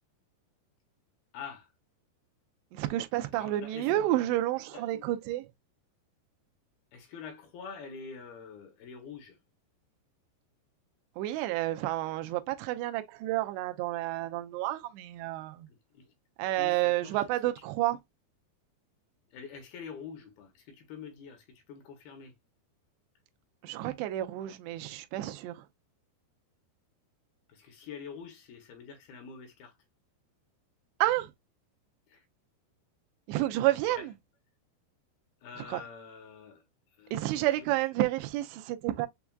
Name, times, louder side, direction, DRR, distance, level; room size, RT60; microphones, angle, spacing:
voice 1, 1.3-1.7 3.4-3.9 4.7-5.1 6.9-9.4 15.9-16.1 16.6-17.2 19.3-22.3 27.5-29.7 32.1-32.2 34.0-34.1 35.4-36.6 37.0-37.5, left 6 dB, 75° left, 2.5 m, -46 dB
voice 2, 2.7-5.5 11.2-15.7 16.4-18.0 23.6-25.6 31.0-31.3 33.3-34.1 35.6-35.8 37.1-39.1, right 15 dB, 85° right, 2.6 m, -30 dB
6.9 x 2.3 x 2.2 m
omnidirectional pair, 5.0 m